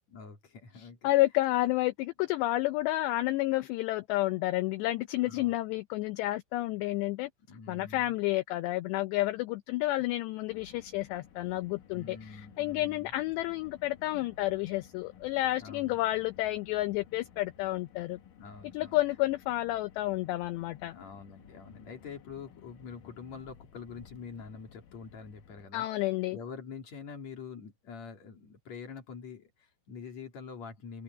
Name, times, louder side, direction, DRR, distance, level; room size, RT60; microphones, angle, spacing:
voice 1, 0.1-1.1 5.2-5.6 7.5-8.1 11.9-13.1 15.6-16.0 18.4-19.0 20.9-25.9 26.3-31.0, left 5 dB, 40° left, 3.4 m, -45 dB
voice 2, 0.8-7.3 7.7-18.2 18.7-20.9 25.7-26.4, left 17 dB, 85° left, 2.4 m, -30 dB
Car, 10.5-25.7, left 8 dB, 60° left, 2.6 m, -56 dB
omnidirectional pair, 5.7 m